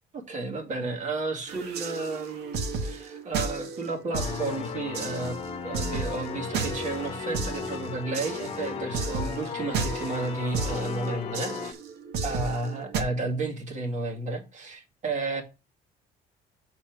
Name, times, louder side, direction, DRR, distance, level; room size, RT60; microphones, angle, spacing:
voice 1, 0.1-5.4 5.6-11.8 12.2-15.4, right 3 dB, 45° right, 2.2 m, -32 dB
sound 1, 1.5-13.0, right 4 dB, 75° right, 1.4 m, -34 dB
sound 2, 4.1-11.7, left 7 dB, 35° left, 1.1 m, -36 dB
6.5 x 4.4 x 6.0 m
cardioid pair, 110°, 17 cm